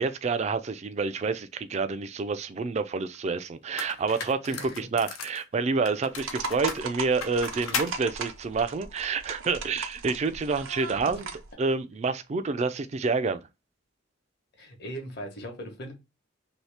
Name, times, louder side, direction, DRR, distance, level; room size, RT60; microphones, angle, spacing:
voice 1, 0.0-11.2 11.6-13.4, right 4 dB, 35° right, 0.3 m, -28 dB
sound 1, 3.1-3.2 3.8-5.4 5.9-8.0, left 6 dB, 90° left, 0.6 m, -36 dB
voice 2, 4.5-4.9 10.9-11.3 14.6-15.9, equal, 55° left, 1.0 m, -40 dB
sound 2, 6.2-11.5, right 4 dB, 75° right, 0.6 m, -37 dB
2.8 x 2.7 x 3.2 m
head